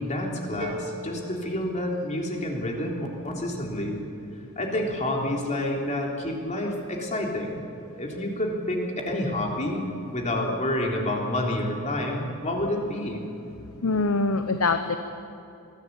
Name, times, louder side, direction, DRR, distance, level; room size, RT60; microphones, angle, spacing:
voice 1, 0.0-4.0 4.5-7.6 8.0-8.8 9.1-13.2, left 1 dB, 35° left, 0 dB, 3.4 m, -29 dB
sound 1, 0.6-2.6, equal, 35° right, 3.4 m, -39 dB
voice 2, 13.8-14.9, left 3 dB, 70° left, 8 dB, 1.0 m, -23 dB
22.5 x 15.5 x 8.3 m, 2.8 s
head